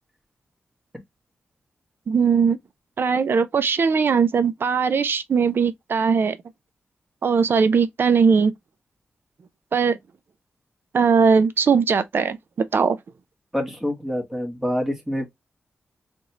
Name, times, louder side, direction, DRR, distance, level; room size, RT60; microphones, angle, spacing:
voice 1, 2.1-2.6 3.0-6.4 7.2-8.5 9.7-10.0 10.9-13.0, right 5 dB, 65° right, 0.7 m, -19 dB
voice 2, 13.5-15.3, equal, 10° right, 2.0 m, -26 dB
3.9 x 3.6 x 3.0 m
cardioid pair, 65°, 4 cm